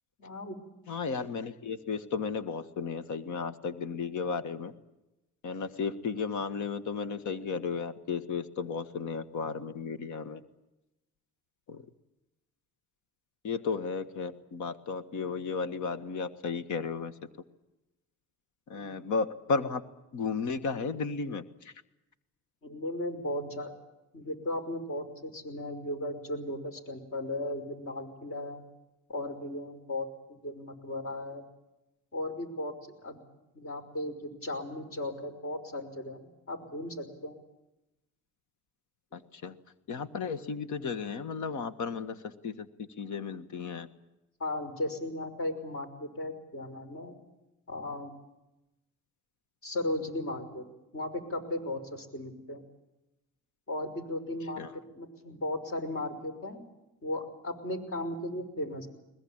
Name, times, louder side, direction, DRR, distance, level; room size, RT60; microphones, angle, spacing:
voice 1, 0.2-0.6 18.7-19.0 22.6-23.7 24.1-28.6 29.1-31.4 32.1-32.8 33.0-33.2 33.5-37.4 44.4-47.1 47.7-48.1 49.6-50.6 50.9-52.6 53.7-54.7 54.9-56.6 57.0-58.9, left 1 dB, 45° left, 8 dB, 5.7 m, -36 dB
voice 2, 0.9-4.7 5.4-10.4 11.7-11.8 13.4-17.1 18.7-19.8 20.1-21.4 39.1-39.5 39.9-43.9 54.6-54.7, left 5 dB, 75° left, 12 dB, 1.7 m, -34 dB
22.0 x 20.5 x 8.9 m, 0.94 s
cardioid pair, 90°, 30 cm